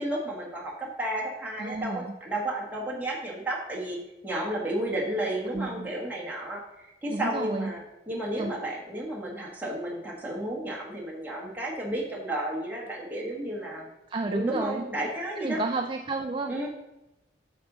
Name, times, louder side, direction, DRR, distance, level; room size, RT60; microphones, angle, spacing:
voice 1, 0.0-4.0 4.2-13.9 14.3-15.6 16.5-16.7, right 1 dB, 10° right, -4 dB, 1.5 m, -32 dB
voice 2, 1.6-2.1 5.5-5.9 7.1-7.7 8.4-8.6 14.1-14.9 15.4-16.6, right 3 dB, 25° right, 4 dB, 0.4 m, -31 dB
9.0 x 6.1 x 3.8 m, 0.95 s
head